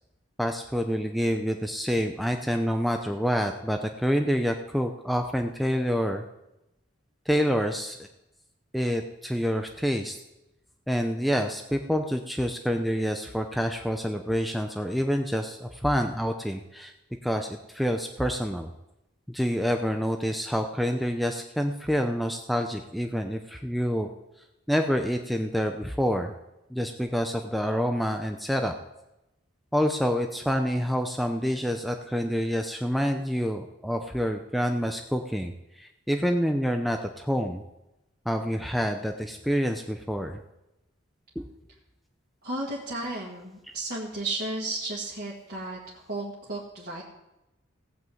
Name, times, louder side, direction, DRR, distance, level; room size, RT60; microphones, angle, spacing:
voice 1, 0.4-6.2 7.3-8.0 8.7-10.2 10.9-16.9 17.2-18.7 19.3-24.1 24.7-26.3 26.7-28.7 29.7-37.6 38.3-40.4 41.4-41.5, equal, ahead, 4 dB, 0.5 m, -27 dB
voice 2, 42.4-47.0, right 2 dB, 45° right, -5 dB, 1.8 m, -34 dB
17.0 x 6.1 x 7.8 m, 0.93 s
head